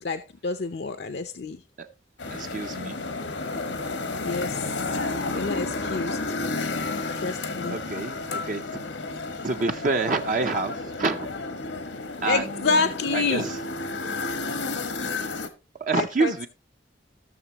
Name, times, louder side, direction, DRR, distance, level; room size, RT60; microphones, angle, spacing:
voice 1, 0.0-1.6 4.2-4.7 5.3-6.4 7.1-7.8 12.2-13.4 15.9-16.5, left 4 dB, 65° left, 0.6 m, -28 dB
sound 1, 2.2-15.5, left 3 dB, 90° left, 1.4 m, -31 dB
voice 2, 2.3-3.0 7.7-8.8 9.4-11.3 12.2-12.7 13.1-13.6 15.8-16.5, right 3 dB, 45° right, 0.6 m, -27 dB
15.5 x 6.8 x 2.9 m
head